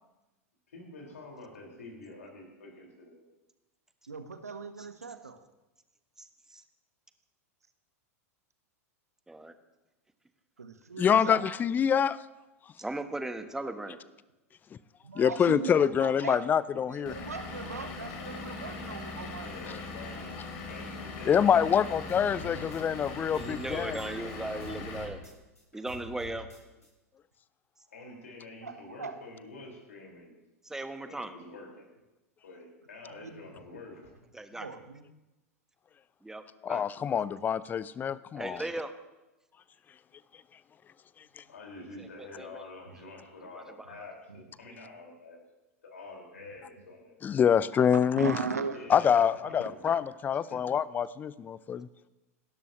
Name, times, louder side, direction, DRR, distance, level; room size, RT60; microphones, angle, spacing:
voice 1, 0.7-3.3 13.3-13.7 19.4-20.4 20.7-21.9 22.4-22.7 27.9-30.3 31.0-31.9 32.4-34.1 41.5-45.4 45.8-47.2 48.7-49.9 50.3-50.6, left 2 dB, 70° left, 0 dB, 5.2 m, -47 dB
voice 2, 4.1-5.4 10.6-11.4 11.9-12.0 15.0-16.4 16.9-19.5 28.6-29.2 33.0-33.4 34.5-35.0 48.2-48.8, right 4 dB, 80° right, 9 dB, 1.3 m, -38 dB
voice 3, 6.2-6.6 9.3-9.5 12.8-14.0 23.3-25.2 25.7-26.5 30.6-31.3 34.3-34.7 36.2-36.9 38.3-38.9 42.0-42.6 43.5-43.6, right 2 dB, 5° right, 9 dB, 1.3 m, -38 dB
voice 4, 11.0-12.2 15.2-17.2 21.3-24.0 36.6-38.6 41.4-41.5 47.2-48.3 48.9-51.9, left 8 dB, 20° left, 19 dB, 0.6 m, -26 dB
Vehicle / Engine, 17.1-25.1, left 3 dB, 50° left, 4.1 m, -40 dB
sound 1, 22.1-24.3 24.6-26.9, equal, 90° left, 4.8 m, -47 dB
28.0 x 12.5 x 3.2 m, 1.0 s
figure-of-eight pair, 90°, 8 cm